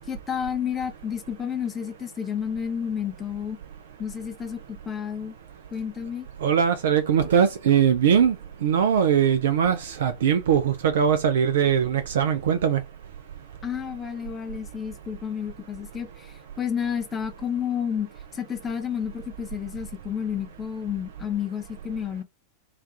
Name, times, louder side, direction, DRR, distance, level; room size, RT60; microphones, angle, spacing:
voice 1, 0.1-3.6 4.0-5.3 5.7-6.3 13.6-22.2, left 8 dB, 20° left, 0.4 m, -31 dB
voice 2, 6.4-12.8, right 8 dB, 60° right, 0.3 m, -21 dB
2.4 x 2.3 x 2.2 m
figure-of-eight pair, 90°, 0 cm